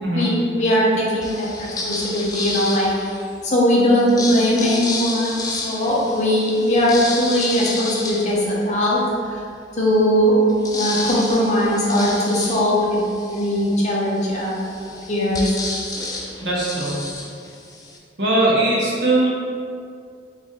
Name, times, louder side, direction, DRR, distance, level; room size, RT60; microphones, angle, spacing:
voice 1, 0.1-3.1 3.4-9.0 9.8-10.4 10.7-13.0 13.3-14.7 15.1-15.5, equal, 40° left, -5 dB, 0.8 m, -19 dB
sound 1, 1.2-3.4 4.0-9.1 9.6-9.7 10.0-18.0, left 2 dB, 20° left, 0.3 m, -31 dB
voice 2, 16.4-16.9 18.2-19.3, right 2 dB, 70° right, -6 dB, 1.0 m, -19 dB
4.2 x 2.5 x 3.6 m, 2.3 s
head